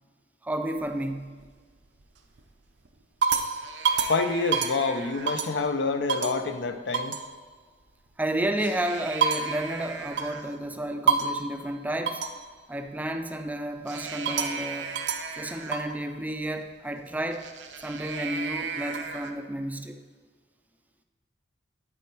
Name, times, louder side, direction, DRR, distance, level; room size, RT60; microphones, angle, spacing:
voice 1, 0.4-1.3 8.2-12.2 12.7-15.0 15.4-17.5 17.8-20.0, right 1 dB, 10° right, 6 dB, 0.4 m, -31 dB
sound 1, 0.8-1.5 2.0-2.4 2.9-5.7 6.1-6.4 6.9-7.3 8.4-10.6 11.1-11.5 12.1-12.4 13.9-16.0 17.3-19.3, right 5 dB, 85° right, 0.7 m, -30 dB
voice 2, 4.1-7.2, left 4 dB, 75° left, 9 dB, 0.6 m, -27 dB
9.7 x 4.5 x 4.6 m, 1.5 s
head